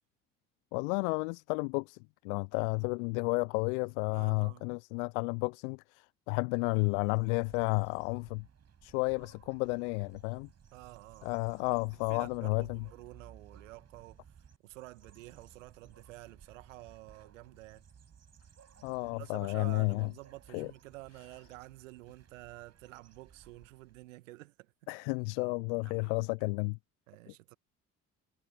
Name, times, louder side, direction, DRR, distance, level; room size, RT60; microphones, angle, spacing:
voice 1, 0.7-2.0 2.2-8.4 8.8-10.5 11.2-12.8 18.8-20.1 20.5-20.7 24.9-26.8, left 33 dB, 65° left, 0.5 m, -32 dB
voice 2, 4.1-4.7 10.7-11.4 12.1-14.3 14.6-17.8 19.1-24.9 25.8-26.1 27.1-27.6, right 19 dB, 75° right, 1.6 m, -50 dB
sound 1, 6.8-24.1, right 7 dB, 40° right, 6.9 m, -59 dB
figure-of-eight pair, 50°, 38 cm